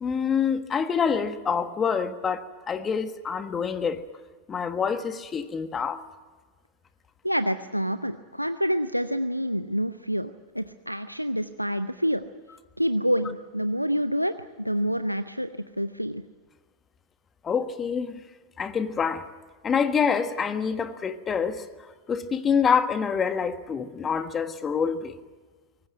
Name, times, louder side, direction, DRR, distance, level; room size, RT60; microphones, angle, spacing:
voice 1, 0.0-4.0 4.5-6.0 17.4-18.2 18.6-19.3 19.6-21.7 22.1-25.1, left 6 dB, 20° left, 1.4 m, -26 dB
voice 2, 7.2-12.2 12.8-16.2, equal, 90° right, 0.6 m, -27 dB
23.5 x 19.5 x 9.3 m
figure-of-eight pair, 90°, 0 cm